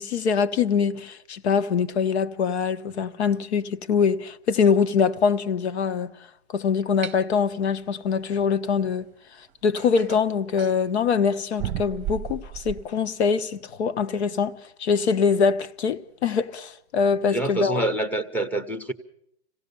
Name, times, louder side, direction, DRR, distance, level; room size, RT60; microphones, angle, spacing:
voice 1, 0.0-6.1 6.5-9.1 9.6-17.8, left 6 dB, 75° left, 1.2 m, -23 dB
sound 1, 7.0-7.2 9.0-9.1 9.8-10.8 11.6-12.9, right 11 dB, 25° right, 0.8 m, -33 dB
voice 2, 17.2-18.9, right 2 dB, 5° left, 0.8 m, -26 dB
26.5 x 17.0 x 6.9 m
hypercardioid pair, 155°, 33 cm